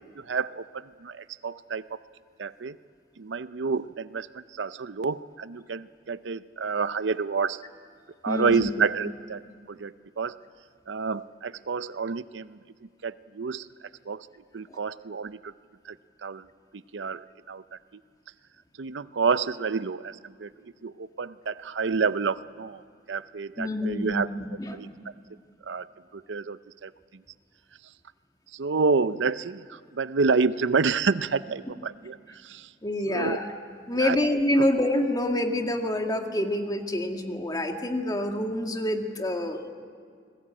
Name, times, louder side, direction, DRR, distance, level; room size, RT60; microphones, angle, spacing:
voice 1, 0.2-2.0 2.4-2.8 3.2-7.6 8.2-9.4 9.7-10.4 10.9-12.6 13.0-14.3 14.5-15.5 15.8-16.0 16.2-16.5 16.7-17.8 18.8-22.8 23.1-24.3 24.7-24.9 25.6-25.9 26.1-27.2 28.5-32.7 33.1-33.4 33.9-34.2 34.6-34.7, right 4 dB, 80° right, 14 dB, 0.6 m, -29 dB
voice 2, 8.3-8.7 14.7-14.8 23.6-24.2 24.6-24.8 32.8-33.4 33.9-39.6, left 1 dB, 20° left, 4 dB, 1.9 m, -27 dB
29.5 x 20.5 x 8.8 m, 2.1 s
head